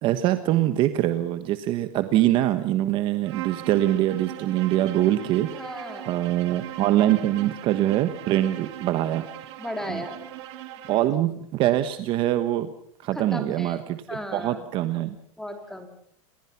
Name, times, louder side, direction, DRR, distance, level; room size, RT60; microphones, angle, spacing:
voice 1, 0.0-5.5 6.1-9.3 9.9-10.0 10.9-12.7 13.0-14.0 14.3-15.1, right 13 dB, 30° right, 10 dB, 1.2 m, -23 dB
Bowed string instrument, 3.2-11.1, right 13 dB, 55° right, 3.3 m, -39 dB
voice 2, 5.5-6.3 9.6-10.2 10.9-11.1 13.1-13.8 14.1-14.7 15.4-15.9, left 1 dB, 5° left, 6 dB, 3.3 m, -36 dB
29.5 x 21.0 x 5.9 m, 0.64 s
supercardioid pair, 165°, 18 cm